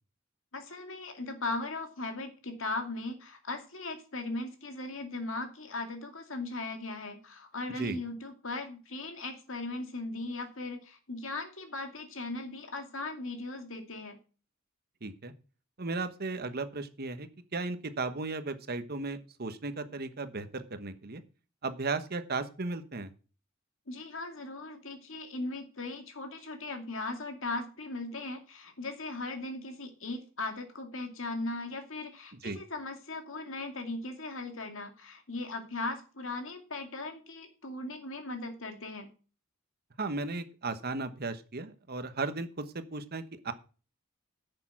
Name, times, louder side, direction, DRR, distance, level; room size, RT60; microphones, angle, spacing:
voice 1, 0.5-14.2 23.9-39.1, left 2 dB, 70° left, 6 dB, 2.4 m, -38 dB
voice 2, 15.0-15.3 15.8-21.2 21.6-23.1 32.4-32.6 40.0-43.5, right 3 dB, 50° right, 10 dB, 1.1 m, -35 dB
10.5 x 6.8 x 6.0 m, 0.36 s
head